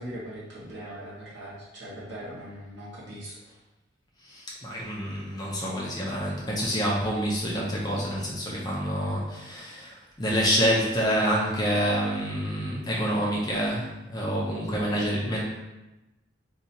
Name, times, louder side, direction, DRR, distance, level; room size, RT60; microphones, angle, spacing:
voice 1, 0.0-3.3, right 1 dB, 55° right, -7 dB, 1.2 m, -40 dB
voice 2, 4.2-15.4, equal, 20° left, -4 dB, 0.5 m, -27 dB
2.8 x 2.4 x 4.0 m, 1.0 s
head